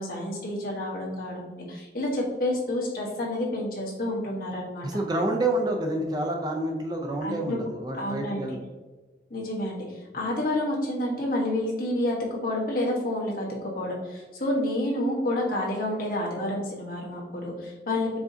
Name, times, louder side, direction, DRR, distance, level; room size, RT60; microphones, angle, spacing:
voice 1, 0.0-4.9 7.2-7.6 7.9-8.5 9.3-13.5 13.7-18.2, left 1 dB, 50° left, -4 dB, 1.2 m, -29 dB
voice 2, 4.8-8.6, right 1 dB, 20° right, 2 dB, 0.4 m, -28 dB
4.8 x 3.8 x 2.7 m, 1.3 s
head